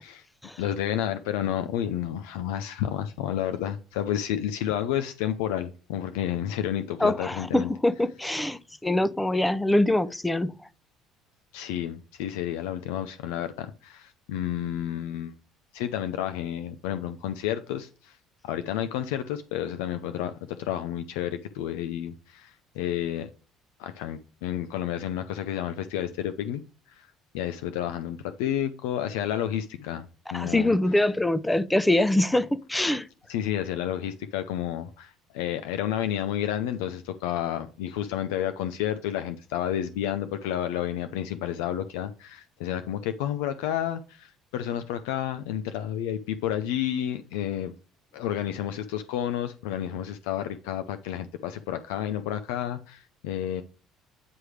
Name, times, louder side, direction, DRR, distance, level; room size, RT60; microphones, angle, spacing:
voice 1, 0.6-7.7 11.5-15.3 15.7-18.2 18.4-20.3 20.6-23.3 23.8-26.6 26.9-27.1 27.3-30.0 30.3-30.7 33.3-47.7 48.1-53.6, left 10 dB, 90° left, 0.5 m, -30 dB
voice 2, 7.0-10.5 30.3-33.1, left 1 dB, 10° left, 0.6 m, -24 dB
9.5 x 3.2 x 4.9 m
supercardioid pair, 90°, 0 cm